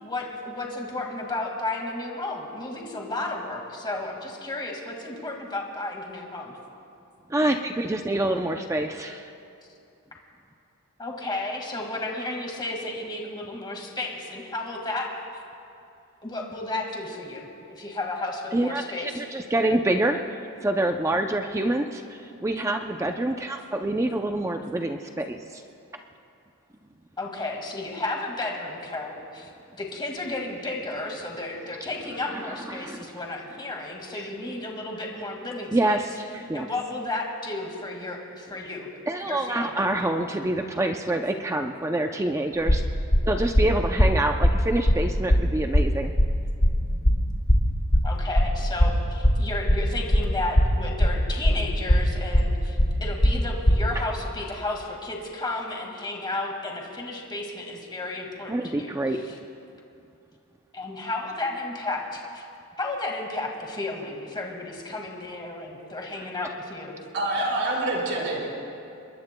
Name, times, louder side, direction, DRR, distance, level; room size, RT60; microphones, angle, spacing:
voice 1, 0.0-6.5 11.0-15.1 16.2-19.1 27.2-36.0 36.5-38.9 39.2-39.9 48.0-59.0 59.2-59.3 60.7-62.5 62.8-67.0, left 2 dB, 20° left, 0 dB, 1.9 m, -33 dB
voice 2, 7.3-9.3 18.5-20.2 20.6-25.6 32.3-33.1 35.7-36.7 39.1-42.8 43.3-46.1 58.5-59.2 66.2-66.3, right 1 dB, 15° right, 4 dB, 0.5 m, -26 dB
sound 1, 42.7-53.8, equal, 60° left, 2.6 m, -19 dB
voice 3, 67.1-68.5, right 2 dB, 55° right, -4 dB, 4.5 m, -26 dB
27.0 x 22.0 x 2.2 m, 2.6 s
head